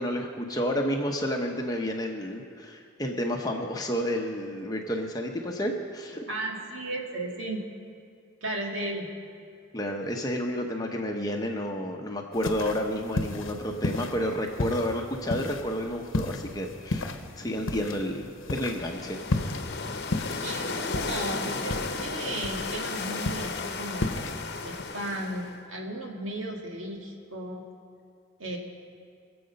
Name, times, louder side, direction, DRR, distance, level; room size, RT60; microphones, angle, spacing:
voice 1, 0.0-6.2 9.7-19.2 19.8-19.9, equal, 20° left, 2 dB, 0.8 m, -30 dB
voice 2, 6.3-7.6 8.4-9.1 20.4-27.6 28.4-28.6, right 1 dB, 80° right, 0 dB, 1.9 m, -35 dB
sound 1, 12.3-24.8, left 2 dB, 80° left, 0.9 m, -34 dB
sound 2, 18.6-25.6, left 4 dB, 50° left, 0.9 m, -34 dB
22.5 x 7.8 x 5.3 m, 2.4 s
head